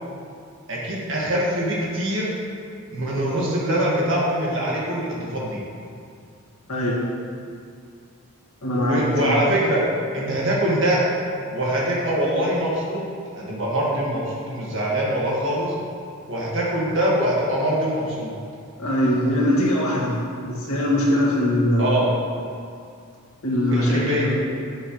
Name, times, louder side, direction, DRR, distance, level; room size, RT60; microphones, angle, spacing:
voice 1, 0.7-2.3 2.9-5.6 8.8-9.8 10.1-11.0 11.5-13.0 13.3-15.7 16.3-18.3 21.8-22.1 23.7-24.3, right 1 dB, 55° right, -5 dB, 1.8 m, -23 dB
voice 2, 6.7-7.1 8.6-9.4 18.8-22.0 23.4-24.3, left 1 dB, 80° left, -4 dB, 1.8 m, -22 dB
10.0 x 6.8 x 3.2 m, 2.3 s
head